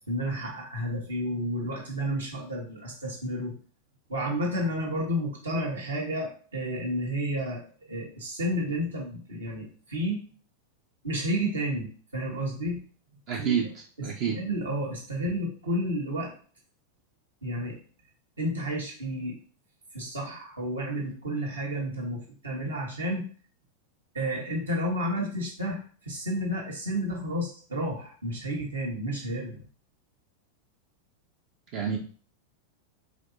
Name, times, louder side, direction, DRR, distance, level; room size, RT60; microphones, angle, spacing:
voice 1, 0.1-3.5 4.1-10.2 11.0-12.8 13.3-13.5 14.0-16.3 17.4-17.8 18.4-19.4 19.9-23.2 24.1-29.6, equal, 75° right, -2 dB, 1.4 m, -31 dB
voice 2, 13.3-14.4 31.7-32.0, right 7 dB, 45° right, 1 dB, 0.5 m, -29 dB
5.0 x 3.1 x 2.6 m, 0.42 s
figure-of-eight pair, 90°, 0 cm